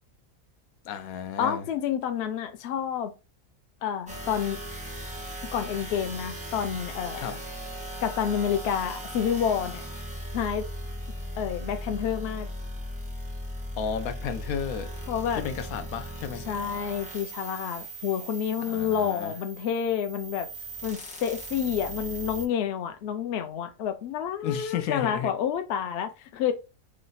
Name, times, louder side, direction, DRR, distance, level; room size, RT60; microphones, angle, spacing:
voice 1, 0.8-1.7 7.2-7.4 13.8-14.9 15.4-16.4 18.6-19.3 24.4-25.3, left 7 dB, 85° left, 1.0 m, -33 dB
voice 2, 1.4-3.1 3.8-4.6 5.5-7.4 8.0-9.8 10.3-10.7 11.4-12.5 15.1-15.4 16.5-20.5 20.8-26.5, left 8 dB, 65° left, 0.7 m, -29 dB
sound 1, 4.1-22.5, right 1 dB, 10° right, 0.4 m, -38 dB
3.2 x 2.0 x 3.9 m
omnidirectional pair, 1.5 m